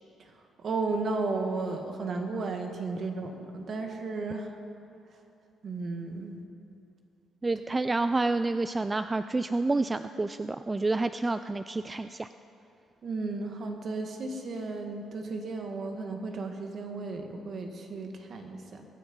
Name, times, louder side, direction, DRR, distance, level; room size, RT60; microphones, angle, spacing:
voice 1, 0.6-4.5 5.6-6.4 13.0-18.9, right 3 dB, 55° right, 4 dB, 1.8 m, -34 dB
voice 2, 7.4-12.3, right 3 dB, 20° right, 11 dB, 0.3 m, -29 dB
22.5 x 9.8 x 5.4 m, 2.7 s
cardioid pair, 90°, 0 cm